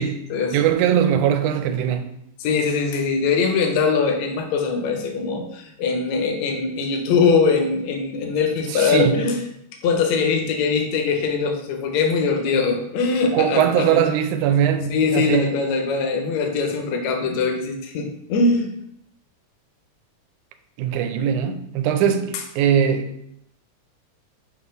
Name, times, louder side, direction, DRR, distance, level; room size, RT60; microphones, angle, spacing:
voice 1, 0.5-2.0 8.7-9.3 12.5-12.6 13.3-15.6 20.8-23.1, right 9 dB, 90° right, 2.1 m, -20 dB
voice 2, 2.4-9.4 9.8-14.1 14.9-18.7, left 4 dB, 75° left, 1.9 m, -22 dB
6.1 x 3.0 x 5.4 m
omnidirectional pair, 3.4 m